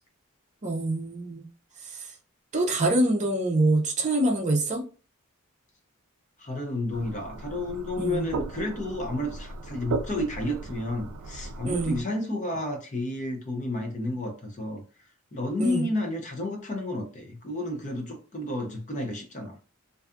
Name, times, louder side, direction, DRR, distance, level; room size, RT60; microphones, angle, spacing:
voice 1, 0.6-1.5 1.9-2.0 2.5-4.8 8.0-8.3 11.6-12.0 15.6-15.9, right 2 dB, 35° right, 0.5 m, -25 dB
voice 2, 6.4-14.8 15.3-19.6, left 1 dB, 35° left, 0.6 m, -31 dB
sound 1, 6.9-12.0, right 4 dB, 85° right, 0.3 m, -36 dB
2.6 x 2.3 x 2.4 m
head